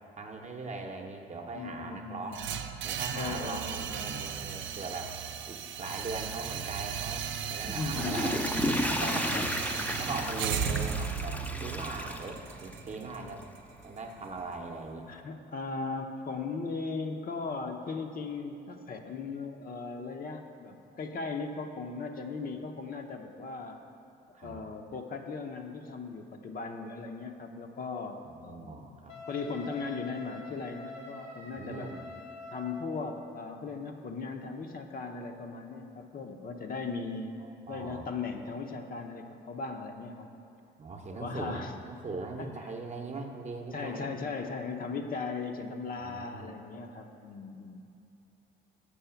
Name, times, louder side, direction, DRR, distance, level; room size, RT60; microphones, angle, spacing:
voice 1, 0.2-2.4 2.8-5.1 5.5-8.3 8.9-9.4 10.0-13.4 13.8-15.1 24.3-24.6 28.2-29.1 31.6-32.1 37.4-38.1 40.8-44.2 46.0-46.5, right 3 dB, 35° right, 2 dB, 0.8 m, -40 dB
voice 2, 1.5-2.5 3.1-4.3 7.7-8.4 9.0-9.5 10.1-10.3 15.1-23.8 24.4-28.8 29.3-31.9 32.5-37.4 37.7-40.3 41.1-41.7 42.4-42.5 43.7-47.8, left 4 dB, 45° left, 4 dB, 0.6 m, -38 dB
sound 1, 2.3-14.4, right 8 dB, 75° right, 0.5 m, -36 dB
Water / Toilet flush, 7.6-12.9 13.4-13.5, left 1 dB, 5° left, 0.4 m, -33 dB
Wind instrument woodwind instrument, 29.1-33.0, left 1 dB, 80° left, 1.5 m, -45 dB
7.0 x 4.7 x 5.8 m, 2.7 s
cardioid pair, 90°, 20 cm